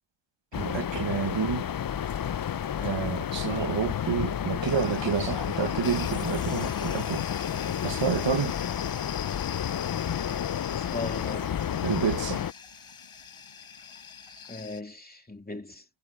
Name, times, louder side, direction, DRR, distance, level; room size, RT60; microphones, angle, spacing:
sound 1, 0.5-12.5, left 9 dB, 45° left, 0.5 m, -31 dB
voice 1, 0.6-1.7 2.8-7.3 7.8-8.6 11.8-12.4, right 6 dB, 65° right, 1.3 m, -29 dB
sound 2, 4.6-14.8, left 7 dB, 80° left, 5.9 m, -42 dB
voice 2, 10.7-11.6 14.5-15.9, left 2 dB, 20° left, 2.7 m, -38 dB
wide cardioid pair, 80°, 48 cm